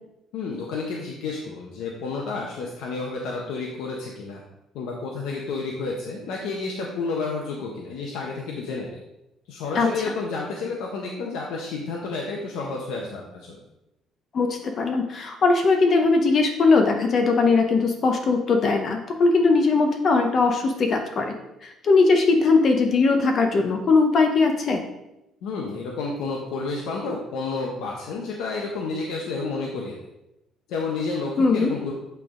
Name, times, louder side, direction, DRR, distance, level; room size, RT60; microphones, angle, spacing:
voice 1, 0.3-4.4 4.7-9.0 9.5-13.6 25.4-30.0 30.7-31.9, left 4 dB, 85° left, -1 dB, 0.8 m, -30 dB
voice 2, 14.3-21.3 21.6-24.8 31.4-31.7, left 4 dB, 40° left, 4 dB, 0.6 m, -20 dB
8.3 x 3.4 x 3.7 m, 0.91 s
cardioid pair, 160°, 0 cm